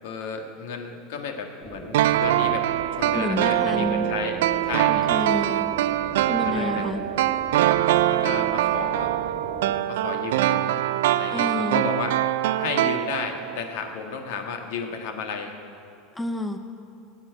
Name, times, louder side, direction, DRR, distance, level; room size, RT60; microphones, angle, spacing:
voice 1, 0.0-4.4 4.6-5.1 6.4-6.9 8.1-9.1 9.9-10.8 11.1-12.1 12.6-15.5, left 5 dB, 75° left, 4 dB, 1.7 m, -33 dB
sound 1, 1.6-9.8, right 2 dB, 15° right, 1.7 m, -40 dB
sound 2, 1.9-13.6 13.8-13.9, right 13 dB, 85° right, 0.4 m, -23 dB
voice 2, 3.1-4.1 4.9-5.7 6.3-7.0 11.3-11.8 16.1-16.6, left 1 dB, 5° left, 7 dB, 0.6 m, -29 dB
18.0 x 7.6 x 9.1 m, 2.5 s
supercardioid pair, 155°, 0 cm